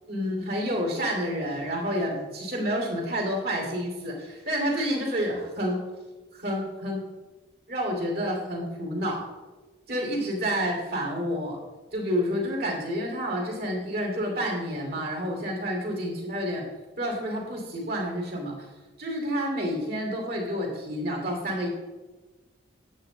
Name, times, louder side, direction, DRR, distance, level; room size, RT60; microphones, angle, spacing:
voice 1, 0.1-5.8 6.3-7.0 7.7-9.2 9.9-11.6 11.9-16.6 17.0-18.7 19.0-21.7, equal, 55° right, 0 dB, 2.6 m, -29 dB
9.4 x 8.3 x 3.9 m, 1.2 s
head